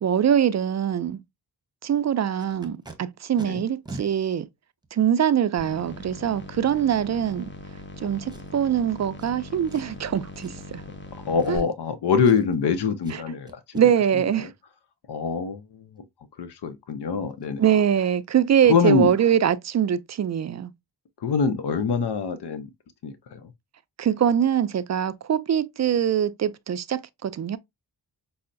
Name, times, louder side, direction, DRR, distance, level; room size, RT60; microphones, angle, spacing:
voice 1, 0.0-1.2 1.8-4.5 4.9-7.4 8.0-10.8 11.5-11.6 13.7-14.5 17.6-20.7 24.0-27.6, right 9 dB, 40° right, 0.4 m, -23 dB
Packing tape duct tape, 2.4-3.0 3.4-3.5 3.9-4.1 4.8-4.9 8.3-8.7 9.2-9.3 9.7-10.0 10.3-10.7 11.4-11.9 12.2-12.6 13.0-13.2 13.5-13.8 16.9-17.0 17.3-17.5 17.8-18.0 18.2-18.5 18.8-18.9, right 3 dB, 10° right, 0.9 m, -43 dB
sound 1, 5.6-11.6, left 2 dB, 25° left, 1.0 m, -41 dB
voice 2, 11.3-13.9 14.4-14.5 15.1-16.1 16.4-17.6 18.6-19.1 21.2-22.7 23.0-23.5, left 5 dB, 65° left, 0.7 m, -24 dB
5.5 x 2.1 x 2.5 m
cardioid pair, 55°, 43 cm